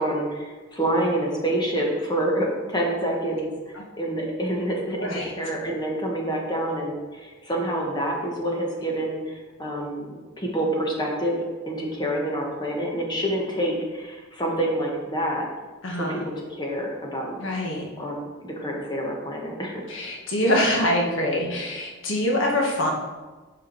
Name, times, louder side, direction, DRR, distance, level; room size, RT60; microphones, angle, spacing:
voice 1, 0.0-11.4 11.7-15.5 15.9-17.4 18.0-18.1 18.4-19.8, right 1 dB, 20° left, -1 dB, 1.4 m, -27 dB
voice 2, 15.8-16.2 17.4-17.8 19.9-22.9, left 1 dB, 65° left, 0 dB, 1.6 m, -24 dB
8.4 x 4.8 x 4.6 m, 1.3 s
head